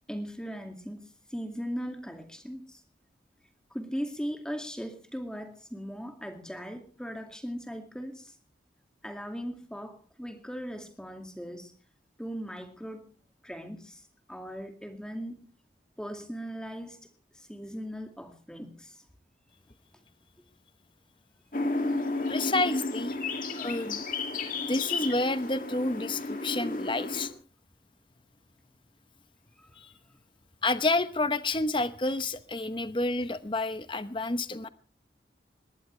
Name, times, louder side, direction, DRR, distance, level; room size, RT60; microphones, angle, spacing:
voice 1, 0.1-2.8 3.7-8.4 9.0-11.7 12.2-13.1 13.4-15.5 16.0-17.0 17.3-19.0 29.6-29.8, equal, 5° left, 5 dB, 2.2 m, -39 dB
sound 1, 21.5-27.3, left 3 dB, 50° left, 2.4 m, -32 dB
voice 2, 22.3-23.1 23.5-24.0 24.6-27.3 29.8-29.9 30.6-34.7, left 2 dB, 30° left, 12 dB, 0.9 m, -29 dB
21.0 x 18.0 x 3.3 m, 0.38 s
head